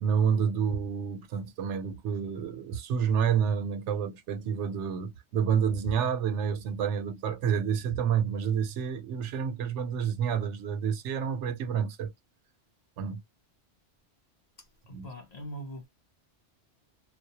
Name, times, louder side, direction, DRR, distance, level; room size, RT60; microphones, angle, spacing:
voice 1, 0.0-12.1 13.0-13.2 14.9-15.1, right 7 dB, 80° right, 0.9 m, -29 dB
voice 2, 14.6-15.9, right 1 dB, 45° left, 0.6 m, -42 dB
2.2 x 2.0 x 2.7 m
omnidirectional pair, 1.2 m